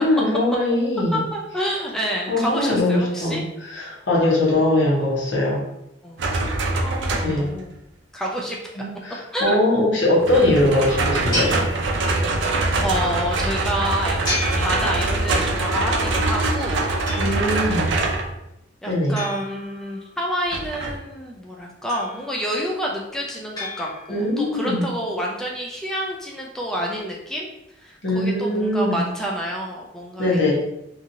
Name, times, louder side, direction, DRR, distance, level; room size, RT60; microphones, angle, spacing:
voice 1, 0.0-1.2 2.3-5.6 7.2-7.5 8.8-11.6 17.1-17.9 18.8-19.2 24.1-24.8 28.0-29.0 30.2-30.5, left 1 dB, 70° left, -4 dB, 1.0 m, -21 dB
voice 2, 1.1-3.4 6.0-6.2 6.8-7.7 8.1-8.8 9.3-9.6 12.5-16.8 18.8-27.5 27.8-30.5, equal, 5° left, -2 dB, 0.3 m, -28 dB
sound 1, 6.2-7.6 10.2-18.3 20.5-20.9, right 2 dB, 70° right, 0.4 m, -23 dB
sound 2, 11.3-12.5 14.3-15.5 17.1-17.8 19.2-20.3 21.9-22.6 23.6-24.4, left 1 dB, 20° left, 1.2 m, -32 dB
2.8 x 2.4 x 2.6 m, 0.85 s
head